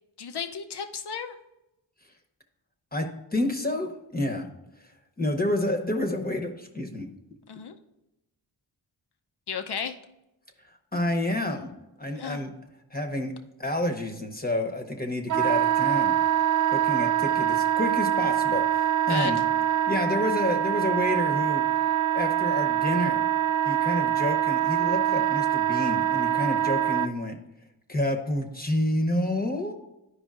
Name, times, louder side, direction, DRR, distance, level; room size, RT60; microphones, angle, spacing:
voice 1, 0.2-1.4 7.5-7.8 9.5-10.0 12.2-12.4 19.1-19.5, left 6 dB, 60° left, 6 dB, 0.8 m, -33 dB
voice 2, 2.9-4.5 5.2-7.1 10.9-11.7 12.0-12.5 12.9-13.3 13.6-16.1 16.7-19.4 19.9-21.6 22.1-23.2 23.6-27.4 27.9-29.7, left 1 dB, 20° left, 3 dB, 1.0 m, -29 dB
Wind instrument woodwind instrument, 15.3-27.1, right 10 dB, 45° right, 0.4 m, -24 dB
11.5 x 4.9 x 2.5 m, 0.90 s
cardioid pair, 60°, 44 cm